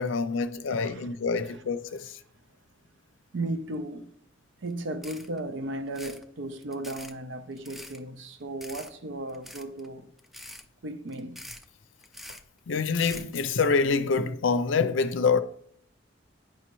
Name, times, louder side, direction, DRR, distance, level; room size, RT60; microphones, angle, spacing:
voice 1, 0.0-2.2 12.7-15.4, left 4 dB, 80° left, 0.5 m, -26 dB
voice 2, 0.7-1.1 1.4-1.6 3.3-4.1 4.6-10.1 10.8-11.4, right 2 dB, 70° right, 0.6 m, -35 dB
sound 1, 4.7-4.8 5.0-5.4 5.9-6.2 6.6-7.1 7.6-8.0 8.6-8.9 9.3-9.9 10.2-10.6 11.1-11.6 12.0-12.4 12.9-13.3, left 1 dB, ahead, 0.4 m, -44 dB
9.0 x 5.4 x 3.0 m
head